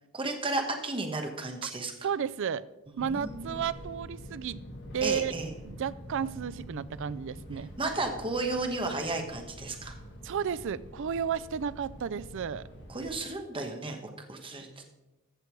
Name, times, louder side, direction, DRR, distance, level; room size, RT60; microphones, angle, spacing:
voice 1, 0.1-1.9 2.9-3.6 5.0-5.5 7.8-10.0 12.9-14.0 14.3-14.8, right 2 dB, 25° right, 4 dB, 1.2 m, -33 dB
voice 2, 2.0-2.6 3.0-4.6 4.9-5.3 5.6-7.7 10.2-12.7, right 7 dB, 60° right, 18 dB, 0.4 m, -32 dB
Fixed-wing aircraft airplane, 3.0-13.3, equal, 55° left, 2.0 m, -46 dB
14.0 x 6.8 x 4.6 m, 1.1 s
head